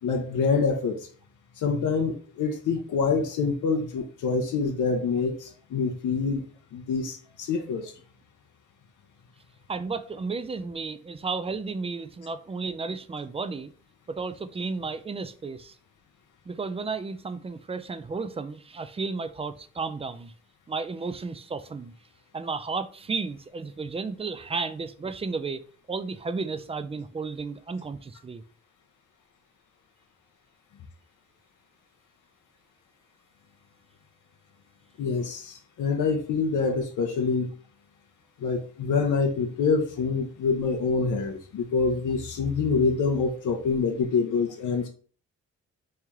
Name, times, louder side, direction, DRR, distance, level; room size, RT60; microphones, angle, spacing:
voice 1, 0.0-1.0 1.6-6.4 6.7-7.9 35.0-37.6 38.4-44.9, left 4 dB, 75° left, 0.6 m, -26 dB
voice 2, 9.7-13.7 14.1-15.7 16.5-20.3 20.7-21.9 22.3-25.6 25.9-28.4, right 4 dB, 20° right, 0.3 m, -33 dB
3.1 x 2.8 x 3.5 m
cardioid pair, 85°, 31 cm